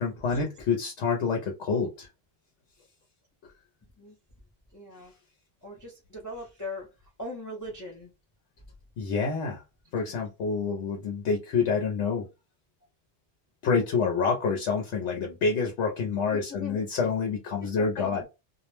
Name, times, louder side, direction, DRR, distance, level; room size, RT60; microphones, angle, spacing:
voice 1, 0.0-2.1 9.0-9.6 9.9-12.3 13.6-18.2, left 5 dB, 85° left, 0.9 m, -27 dB
voice 2, 3.8-4.2 4.7-5.1 5.6-8.1 16.3-16.8 17.6-18.3, left 1 dB, 25° left, 0.4 m, -40 dB
2.3 x 2.0 x 3.0 m
omnidirectional pair, 1.1 m